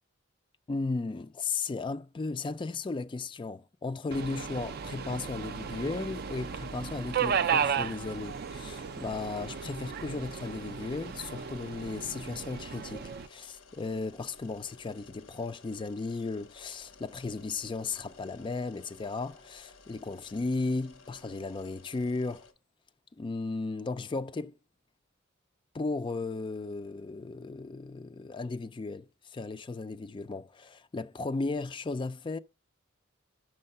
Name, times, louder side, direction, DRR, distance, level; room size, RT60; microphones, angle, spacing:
voice 1, 0.7-22.4 23.2-24.6 25.7-32.4, left 3 dB, 25° left, 0.3 m, -35 dB
Subway metro underground, 4.1-13.3, right 7 dB, 50° right, 0.4 m, -34 dB
sound 1, 4.4-22.5, left 4 dB, 75° left, 1.2 m, -56 dB
6.5 x 6.3 x 5.4 m
head